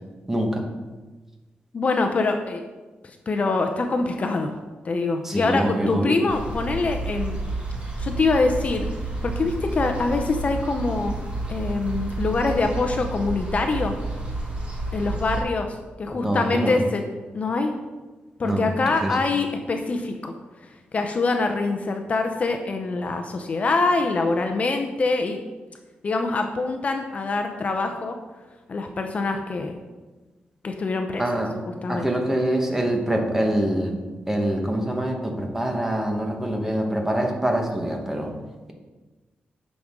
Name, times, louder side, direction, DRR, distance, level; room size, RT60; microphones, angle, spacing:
voice 1, 0.3-0.6 5.2-6.2 16.1-16.8 18.4-18.6 19.0-19.1 31.2-31.5 31.9-34.0 34.3-38.3, right 1 dB, 10° right, 2 dB, 1.1 m, -24 dB
voice 2, 1.7-2.6 3.3-4.6 4.8-7.4 8.0-8.9 9.2-11.2 11.5-14.0 14.9-17.0 17.3-17.7 18.4-20.3 20.6-25.4 26.0-28.2 28.7-29.8 30.6-31.2 31.8-32.1, left 3 dB, 40° left, 5 dB, 0.6 m, -24 dB
sound 1, 6.3-15.4, right 2 dB, 30° right, 2.0 m, -30 dB
10.0 x 6.1 x 3.7 m, 1.2 s
wide cardioid pair, 160°, 4 cm